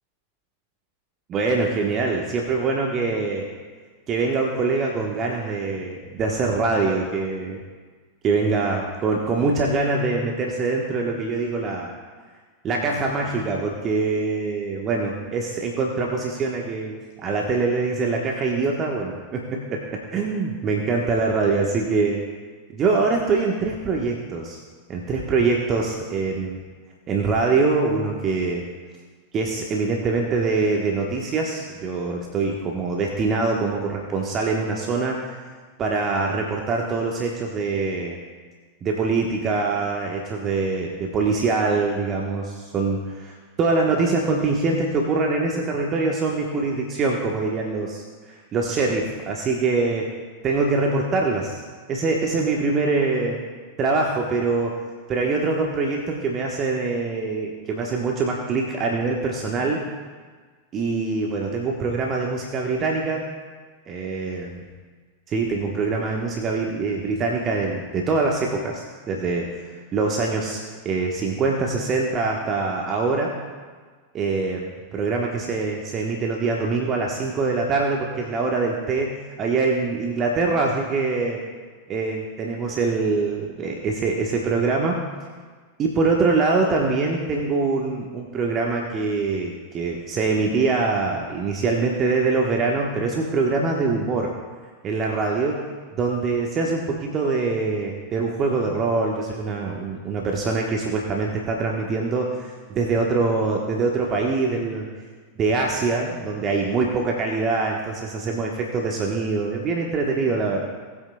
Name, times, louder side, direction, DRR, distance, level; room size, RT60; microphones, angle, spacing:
voice 1, 1.3-3.5 4.1-7.6 8.2-11.9 12.6-22.2 22.7-24.6 24.9-26.6 27.1-28.7 29.3-35.3 35.8-38.2 38.8-50.1 50.4-51.6 51.9-53.4 53.8-54.8 55.1-59.8 60.7-63.2 63.9-64.6 65.3-69.5 69.9-73.3 74.1-81.4 81.9-85.0 85.8-94.3 94.8-95.6 95.9-104.9 105.4-110.6, right 3 dB, 30° right, 0 dB, 1.2 m, -24 dB
18.5 x 8.5 x 2.3 m, 1.5 s
figure-of-eight pair, 90°, 0 cm